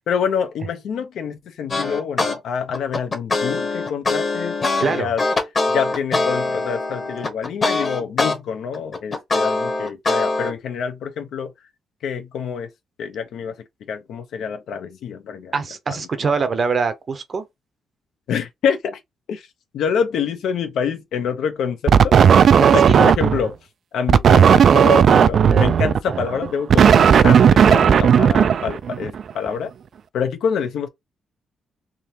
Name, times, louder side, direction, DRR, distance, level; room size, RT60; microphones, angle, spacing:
voice 1, 0.1-5.2 5.7-11.5 12.0-12.7 13.0-13.6 13.9-15.5 16.2-16.3 18.3-19.0 19.3-19.5 19.7-22.2 22.6-23.6 23.9-29.7 30.1-30.9, left 7 dB, 75° left, 0.9 m, -26 dB
sound 1, 1.7-2.4 2.7-8.4 8.7-10.5, left 3 dB, 30° left, 1.1 m, -22 dB
voice 2, 4.8-5.1 15.5-17.5 22.6-23.0, right 5 dB, 35° right, 0.7 m, -23 dB
sound 2, 21.9-23.5 24.1-29.2, right 7 dB, 50° right, 0.3 m, -13 dB
3.6 x 2.8 x 2.9 m
cardioid pair, 150°, 0 cm